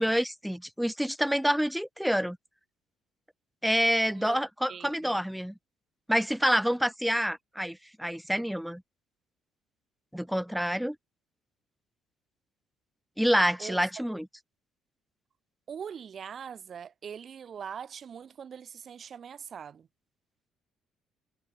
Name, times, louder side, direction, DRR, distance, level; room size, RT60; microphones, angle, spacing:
voice 1, 0.0-2.4 3.6-5.5 6.1-8.8 10.1-11.0 13.2-14.3, equal, ahead, 0.4 m, -27 dB
voice 2, 4.1-4.4 4.7-5.3 13.6-14.0 15.7-19.9, right 7 dB, 40° right, 3.6 m, -42 dB
cardioid pair, 130°, 0 cm